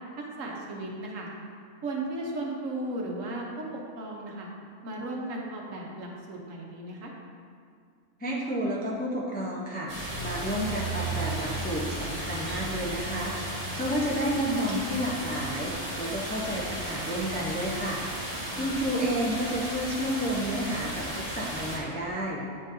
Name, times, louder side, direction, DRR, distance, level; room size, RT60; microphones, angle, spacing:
voice 1, 0.2-1.3 1.8-4.5 4.8-7.1 18.5-18.9, right 2 dB, 70° right, -1 dB, 1.3 m, -36 dB
voice 2, 8.2-13.3 13.8-18.0 18.5-22.4, equal, 15° left, -4 dB, 0.4 m, -31 dB
sound 1, 9.9-21.8, right 1 dB, 30° right, 1.2 m, -34 dB
9.5 x 3.9 x 2.7 m, 2.2 s
omnidirectional pair, 1.4 m